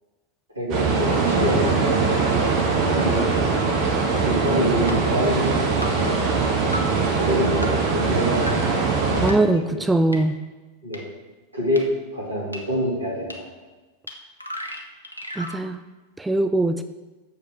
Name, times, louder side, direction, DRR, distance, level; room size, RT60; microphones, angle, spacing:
voice 1, 0.5-2.1 2.9-3.7 4.2-6.1 7.2-8.4 9.1-9.4 9.7-9.8 10.8-11.0 11.5-11.9 12.1-13.5, equal, 80° right, -4 dB, 2.5 m, -26 dB
sound 1, 0.7-9.3, right 4 dB, 40° right, 1.4 m, -22 dB
sound 2, 3.8-3.9 4.9-5.0 5.8-5.9 6.7-6.8 7.6-7.7 8.5-8.6 9.3-9.4 10.1-10.2 10.9-11.0 11.8-11.9 12.5-12.6 13.3-13.4 14.1-14.2 14.4-15.6, equal, 85° left, 0.9 m, -33 dB
voice 2, 9.2-10.4 15.4-15.8 16.2-16.8, right 2 dB, 5° right, 9 dB, 0.3 m, -21 dB
7.0 x 5.1 x 6.2 m, 1.2 s
figure-of-eight pair, 90°, 0 cm